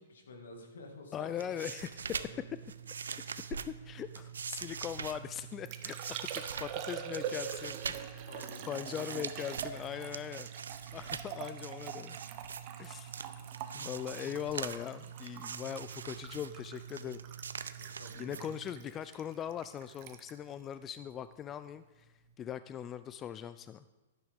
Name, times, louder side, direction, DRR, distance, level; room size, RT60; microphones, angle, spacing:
voice 1, 0.0-1.7 2.1-2.5 6.4-6.5 8.2-9.1 13.2-13.5 17.8-18.9, left 3 dB, 75° left, 2 dB, 2.1 m, -52 dB
voice 2, 1.1-2.1 3.1-8.2 8.7-10.5 10.9-12.2 12.8-13.1 13.7-17.2 18.2-22.1 22.4-23.8, left 9 dB, 25° left, 13 dB, 0.3 m, -40 dB
sound 1, 1.2-18.8, right 6 dB, 80° right, 0.5 m, -43 dB
Liquid, 4.9-21.5 21.8-22.3, right 9 dB, 45° right, 0.9 m, -45 dB
11.5 x 10.0 x 3.6 m, 1.1 s
hypercardioid pair, 120°, 0 cm